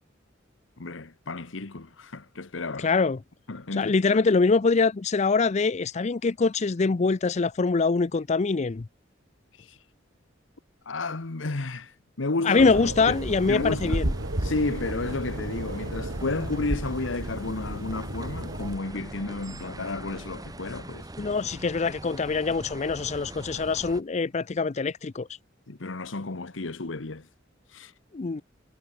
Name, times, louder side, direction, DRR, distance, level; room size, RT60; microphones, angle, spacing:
voice 1, 0.8-2.9 3.5-4.2 9.6-9.8 10.9-12.7 13.0-13.2 13.5-14.0 14.4-21.1 25.7-27.3 27.7-27.9, left 3 dB, 75° left, 1.2 m, -32 dB
voice 2, 2.8-3.2 3.8-8.9 12.4-14.1 21.2-25.3 28.1-28.4, left 4 dB, 35° left, 0.5 m, -24 dB
sound 1, 12.6-18.8, right 1 dB, 85° right, 3.1 m, -33 dB
sound 2, 13.1-24.0, right 1 dB, 20° right, 1.6 m, -41 dB
head